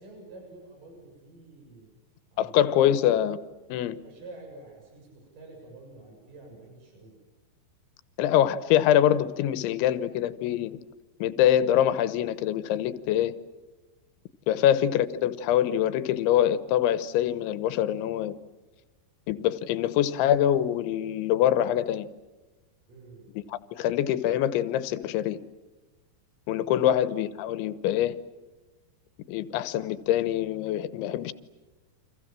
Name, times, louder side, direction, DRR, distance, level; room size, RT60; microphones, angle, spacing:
voice 1, 0.0-1.9 2.3-2.8 3.8-7.2 14.5-14.7 22.9-23.3 26.8-26.9, right 2 dB, 45° right, 8.8 m, -48 dB
voice 2, 2.4-3.4 3.7-4.0 8.2-10.8 11.2-13.3 14.5-18.4 19.3-22.1 23.5-25.4 26.5-28.2 29.3-31.3, left 11 dB, 90° left, 3.4 m, -24 dB
29.5 x 26.5 x 7.6 m
omnidirectional pair, 5.2 m